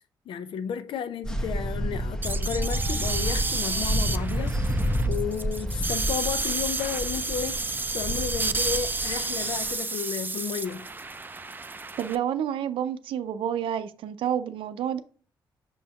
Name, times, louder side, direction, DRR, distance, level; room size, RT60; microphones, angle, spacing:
voice 1, 0.3-4.7 5.1-10.9, left 8 dB, 80° left, 0.6 m, -33 dB
sound 1, 1.2-9.7, equal, 10° left, 0.9 m, -30 dB
sound 2, 2.2-12.1, right 3 dB, 25° right, 0.5 m, -31 dB
voice 2, 12.0-15.0, right 9 dB, 85° right, 0.5 m, -29 dB
6.2 x 5.5 x 2.9 m
cardioid pair, 75°, 9 cm